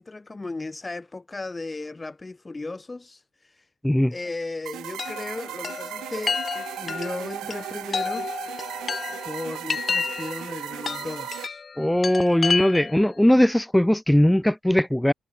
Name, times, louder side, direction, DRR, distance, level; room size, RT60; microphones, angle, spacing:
voice 1, 0.0-3.7 4.1-6.4 6.8-8.3 9.3-11.6, left 3 dB, 20° left, 2.1 m, -35 dB
voice 2, 3.8-4.1 11.8-15.1, left 1 dB, 5° left, 2.6 m, -19 dB
sound 1, 4.7-11.5, right 14 dB, 85° right, 1.1 m, -36 dB
Chime, 5.0-13.1, left 5 dB, 40° left, 1.9 m, -31 dB
cardioid pair, 90°, 0 cm